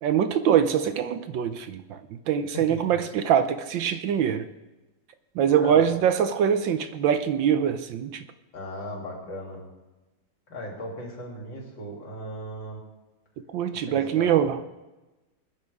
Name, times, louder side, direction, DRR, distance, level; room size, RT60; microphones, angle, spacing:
voice 1, 0.0-4.5 5.3-8.3 13.5-14.6, right 8 dB, 70° right, 10 dB, 1.3 m, -23 dB
voice 2, 2.5-3.0 5.6-5.9 8.5-9.6 10.5-12.8 13.9-14.4, left 1 dB, 60° left, -2 dB, 3.8 m, -37 dB
22.0 x 10.0 x 3.5 m, 1.1 s
omnidirectional pair, 2.3 m